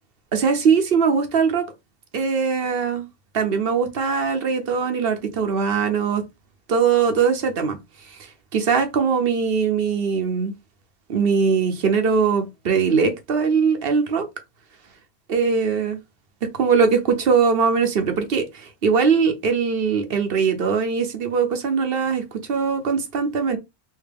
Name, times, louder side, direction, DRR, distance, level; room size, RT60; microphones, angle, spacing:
voice 1, 0.3-1.7 2.1-3.1 3.3-6.2 6.7-7.8 8.1-10.5 11.1-14.2 15.3-16.0 16.5-23.6, right 5 dB, 60° right, 0.9 m, -21 dB
3.3 x 2.8 x 3.3 m
omnidirectional pair, 1.1 m